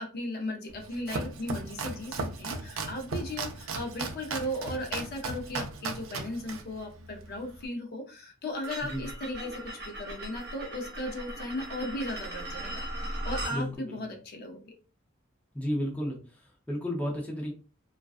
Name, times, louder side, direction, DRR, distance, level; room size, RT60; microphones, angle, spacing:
voice 1, 0.0-14.8, left 1 dB, 50° left, 2 dB, 0.6 m, -36 dB
Domestic sounds home sounds, 0.7-7.7, right 4 dB, 75° right, 0.4 m, -37 dB
sound 1, 8.6-13.6, right 1 dB, 50° right, 1.0 m, -38 dB
voice 2, 13.5-14.0 15.5-17.5, equal, 5° left, -2 dB, 0.6 m, -33 dB
2.4 x 2.2 x 2.4 m, 0.34 s
head